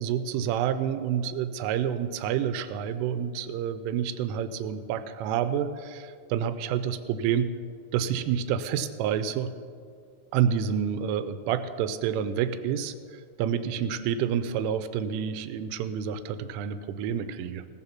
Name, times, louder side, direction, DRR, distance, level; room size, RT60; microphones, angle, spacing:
voice 1, 0.0-7.5 7.9-9.5 10.3-17.6, right 8 dB, 85° right, 12 dB, 3.0 m, -28 dB
17.5 x 7.8 x 5.8 m, 2.2 s
omnidirectional pair, 5.9 m